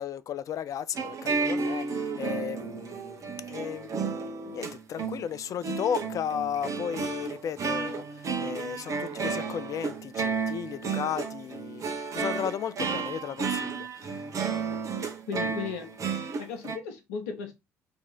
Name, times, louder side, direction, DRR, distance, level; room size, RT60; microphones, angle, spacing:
voice 1, 0.0-4.1 4.4-14.3, left 9 dB, 45° left, 0.4 m, -35 dB
sound 1, 0.9-16.8, right 5 dB, 40° right, 0.8 m, -32 dB
voice 2, 15.3-17.5, left 6 dB, 70° left, 0.8 m, -36 dB
3.5 x 2.9 x 4.4 m
figure-of-eight pair, 50°, 8 cm